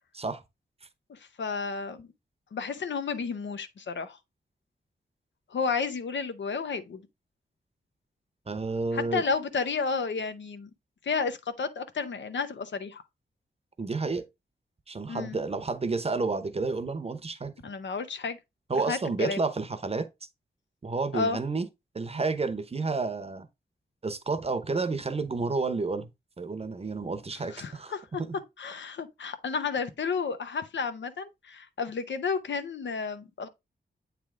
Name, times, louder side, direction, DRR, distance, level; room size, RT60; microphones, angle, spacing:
voice 1, 1.1-2.1 2.5-4.2 5.5-7.0 8.9-10.7 11.0-13.0 15.1-15.4 17.6-18.4 18.9-19.4 21.1-21.4 27.5-28.2 28.6-33.5, left 5 dB, 80° left, 0.7 m, -32 dB
voice 2, 8.5-9.2 13.8-14.2 14.9-17.5 18.7-20.1 20.8-21.7 21.9-23.5 24.0-26.1 26.4-27.9 28.2-28.3, right 3 dB, 35° right, 0.8 m, -30 dB
8.3 x 3.4 x 3.6 m
wide cardioid pair, 120°, 19 cm